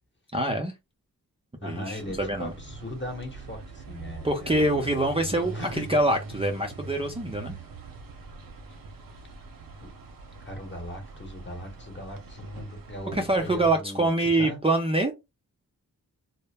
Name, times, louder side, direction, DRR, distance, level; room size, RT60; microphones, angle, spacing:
voice 1, 0.3-0.7 1.6-2.5 4.2-7.6 13.1-15.1, right 1 dB, 15° right, 0.5 m, -25 dB
voice 2, 1.6-4.9 5.5-5.9 9.8-9.9 10.5-14.1 14.4-14.6, left 1 dB, 30° left, 1.1 m, -38 dB
sound 1, 2.0-13.7, right 3 dB, 65° right, 0.7 m, -42 dB
2.0 x 2.0 x 3.3 m
cardioid pair, 50°, 36 cm